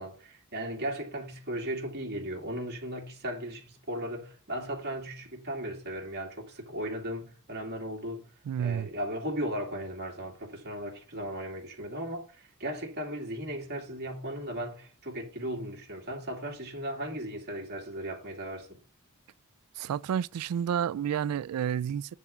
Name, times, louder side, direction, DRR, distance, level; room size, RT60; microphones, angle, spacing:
voice 1, 0.0-8.3 8.6-18.8, right 1 dB, 45° right, 2.5 m, -36 dB
voice 2, 8.5-8.9 19.8-22.2, right 8 dB, 80° right, 0.3 m, -30 dB
10.0 x 3.6 x 7.0 m
head